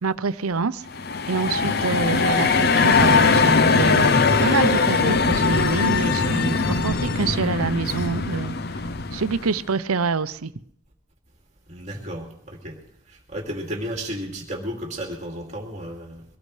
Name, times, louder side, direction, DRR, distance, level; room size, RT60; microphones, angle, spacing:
voice 1, 0.0-0.8 1.3-8.6 9.1-10.5, right 4 dB, 80° right, 14 dB, 0.7 m, -26 dB
sound 1, 0.9-9.6, left 4 dB, 45° left, 0.6 m, -20 dB
voice 2, 1.5-1.8 11.7-12.8 13.1-16.2, equal, 30° right, 0 dB, 2.6 m, -33 dB
23.5 x 18.0 x 3.3 m, 0.70 s
head